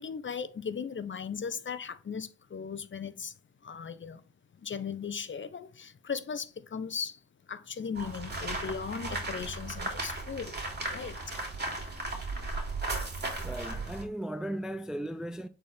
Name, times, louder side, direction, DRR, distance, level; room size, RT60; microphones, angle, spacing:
voice 1, 0.0-3.3 3.6-4.2 4.5-7.2 7.5-10.6 10.9-11.4, left 6 dB, 35° left, 0.9 m, -37 dB
sound 1, 7.9-14.0, right 2 dB, 30° right, 3.3 m, -36 dB
voice 2, 13.4-15.5, right 1 dB, ahead, 0.5 m, -36 dB
8.5 x 4.4 x 3.5 m
supercardioid pair, 60°, 33 cm